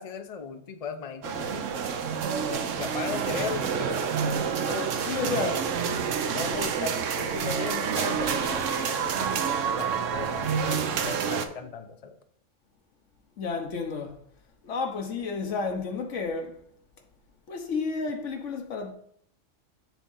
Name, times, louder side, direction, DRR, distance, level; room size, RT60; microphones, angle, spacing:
voice 1, 0.0-1.6 2.5-4.0 4.7-5.9 6.3-12.2, left 5 dB, 40° left, 0.6 m, -37 dB
sound 1, 1.2-11.5, right 7 dB, 75° right, 1.1 m, -28 dB
voice 2, 5.1-5.7 13.4-14.2 14.6-16.5 17.5-18.9, left 4 dB, 70° left, 1.3 m, -31 dB
7.3 x 3.7 x 5.5 m
omnidirectional pair, 1.3 m